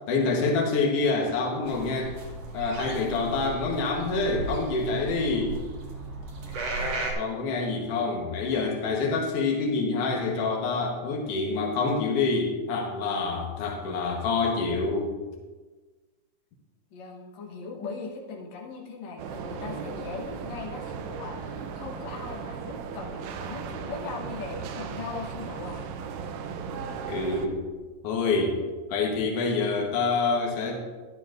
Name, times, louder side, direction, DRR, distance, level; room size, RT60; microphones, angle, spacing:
voice 1, 0.1-2.1 2.5-5.6 7.1-15.1 27.1-27.6 28.0-28.6 28.9-30.8, left 3 dB, 90° left, 1 dB, 1.3 m, -26 dB
sound 1, 1.6-7.1, right 3 dB, 60° right, 1.7 m, -35 dB
voice 2, 16.9-25.8, left 4 dB, 65° left, -1 dB, 1.8 m, -39 dB
sound 2, 19.2-27.5, right 6 dB, 85° right, 2.7 m, -36 dB
12.5 x 11.0 x 2.5 m, 1.3 s
omnidirectional pair, 4.6 m